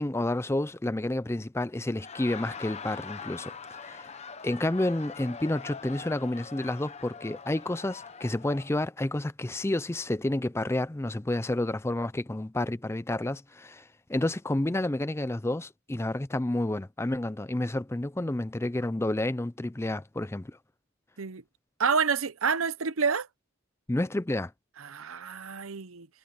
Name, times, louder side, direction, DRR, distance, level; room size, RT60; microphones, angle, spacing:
voice 1, 0.0-3.5 3.8-4.1 4.4-13.8 14.1-20.6 23.9-24.5, left 1 dB, 10° left, 0.4 m, -30 dB
Laughter, 1.9-8.7, left 5 dB, 30° left, 0.9 m, -43 dB
voice 2, 21.8-23.3 24.8-26.1, right 5 dB, 80° right, 0.8 m, -28 dB
head